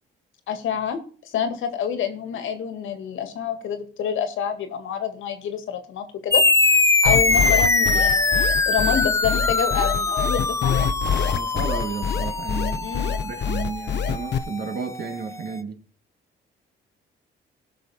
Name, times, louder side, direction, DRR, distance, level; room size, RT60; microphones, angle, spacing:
voice 1, 0.5-1.0 1.3-6.4 7.0-10.7 12.8-13.2, left 8 dB, 80° left, 1.9 m, -27 dB
sound 1, 6.3-15.2, left 3 dB, 15° left, 0.7 m, -22 dB
sound 2, 7.1-14.4, left 7 dB, 60° left, 0.8 m, -25 dB
voice 2, 11.3-12.9 13.2-15.8, right 5 dB, 55° right, 2.1 m, -32 dB
17.5 x 6.3 x 4.3 m
cardioid pair, 90°, 20 cm